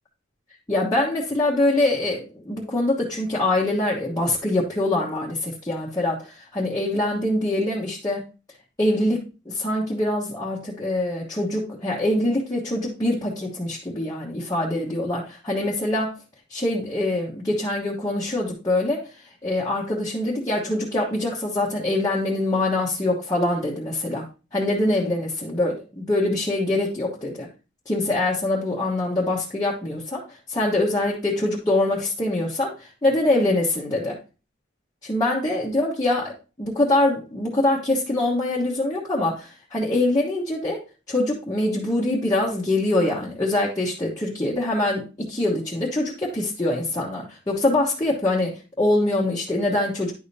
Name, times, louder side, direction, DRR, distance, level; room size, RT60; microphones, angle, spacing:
voice 1, 0.7-8.2 8.8-16.2 16.5-19.1 19.4-24.3 24.5-27.5 27.9-34.2 35.0-50.1, left 1 dB, 20° left, -5 dB, 1.2 m, -24 dB
10.5 x 5.0 x 2.8 m, 0.32 s
head